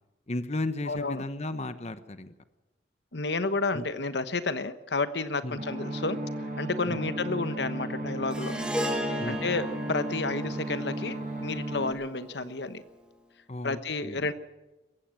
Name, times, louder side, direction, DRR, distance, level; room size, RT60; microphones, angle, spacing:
voice 1, 0.3-2.3 3.7-3.9 5.4-5.6 6.9-7.0 9.2-9.4 13.5-14.2, left 2 dB, 40° left, 11 dB, 1.1 m, -34 dB
voice 2, 0.8-1.2 3.1-6.2 6.6-8.7 9.3-12.8 13.6-14.3, left 3 dB, 70° left, 12 dB, 1.3 m, -31 dB
sound 1, 5.6-11.9, right 2 dB, 45° right, 5.1 m, -35 dB
Harp, 8.3-12.7, equal, 5° right, 2.4 m, -36 dB
22.0 x 16.0 x 7.7 m, 1.1 s
head